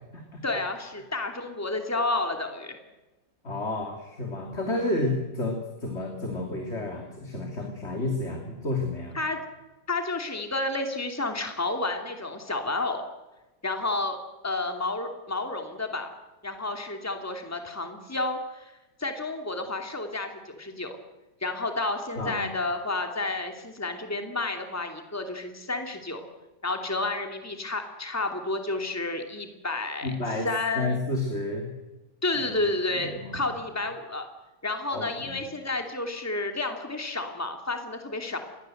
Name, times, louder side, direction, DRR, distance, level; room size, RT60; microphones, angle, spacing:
voice 1, 0.4-2.8 9.1-9.4 9.9-13.0 13.6-14.2 14.4-16.1 16.4-18.7 19.0-20.9 21.4-26.2 26.6-30.1 30.4-31.0 32.2-34.3 34.6-38.4, left 2 dB, 10° left, 5 dB, 2.8 m, -30 dB
voice 2, 3.4-9.2 22.2-22.5 30.0-30.5 30.7-31.7 32.9-33.5 34.9-35.4, left 2 dB, 35° left, 3 dB, 3.2 m, -31 dB
28.0 x 22.0 x 8.0 m, 1.1 s
omnidirectional pair, 2.0 m